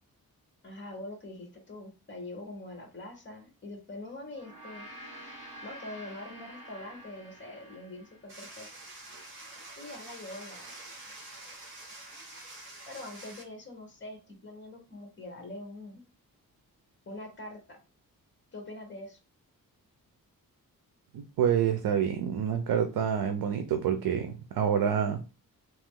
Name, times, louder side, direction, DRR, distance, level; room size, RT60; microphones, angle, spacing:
voice 1, 0.6-4.9 5.6-8.8 9.8-10.7 12.9-16.0 17.1-17.8 18.5-19.2, left 2 dB, 30° left, 1.3 m, -44 dB
Gong, 4.3-8.9, right 1 dB, 60° right, 1.7 m, -48 dB
sound 1, 8.3-13.4, right 2 dB, 35° right, 1.6 m, -47 dB
voice 2, 21.1-25.2, right 8 dB, 80° right, 0.6 m, -27 dB
3.1 x 2.9 x 3.7 m
wide cardioid pair, 140°, 35 cm